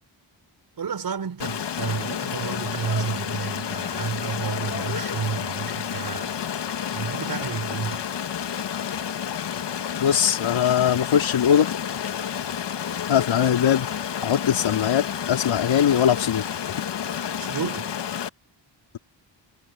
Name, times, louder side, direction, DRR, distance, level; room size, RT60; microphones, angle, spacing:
voice 1, 0.8-6.3 6.9-8.1 17.4-17.9, right 6 dB, 50° right, 6.4 m, -31 dB
Stream, 1.4-18.3, left 8 dB, 60° left, 1.8 m, -30 dB
voice 2, 10.0-11.7 13.1-13.9 14.2-16.4, left 9 dB, 90° left, 3.7 m, -21 dB
wide cardioid pair, 170°, 46 cm